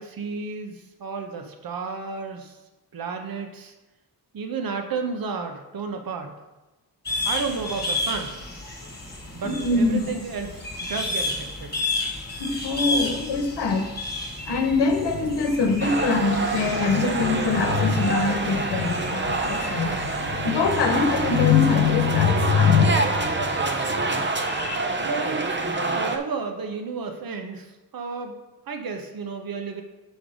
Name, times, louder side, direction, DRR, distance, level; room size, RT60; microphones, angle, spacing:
voice 1, 0.0-2.6 2.9-3.7 4.3-6.3 7.2-8.3 9.3-9.5 9.8-11.7 25.0-25.5 25.8-28.4 28.7-29.8, right 4 dB, 60° right, 5 dB, 1.0 m, -32 dB
sound 1, 7.0-22.3, left 2 dB, 25° left, 1.5 m, -33 dB
voice 2, 9.4-10.1 12.4-13.9 14.4-23.4 24.4-24.8, left 5 dB, 80° left, 5 dB, 1.1 m, -23 dB
sound 2, 15.8-26.2, right 3 dB, 30° right, 0.7 m, -27 dB
5.8 x 5.3 x 5.0 m, 1.1 s
cardioid pair, 90°, 40 cm